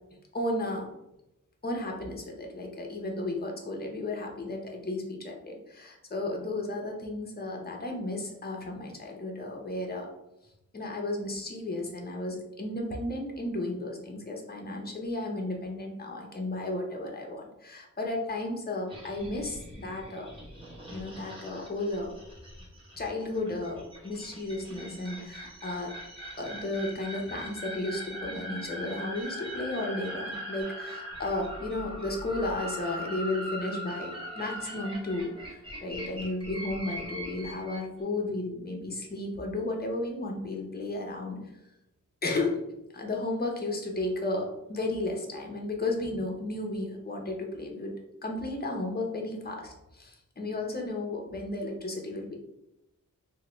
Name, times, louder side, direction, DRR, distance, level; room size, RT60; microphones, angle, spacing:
voice 1, 0.3-0.9 1.6-10.1 10.7-20.3 20.9-22.1 23.0-25.9 26.4-41.4 42.2-42.6 42.9-47.9 48.2-52.4, left 2 dB, 30° left, 0 dB, 0.6 m, -34 dB
sound 1, 18.9-37.8, equal, 15° right, 0.9 m, -41 dB
3.6 x 2.1 x 3.0 m, 0.88 s
wide cardioid pair, 125°, 32 cm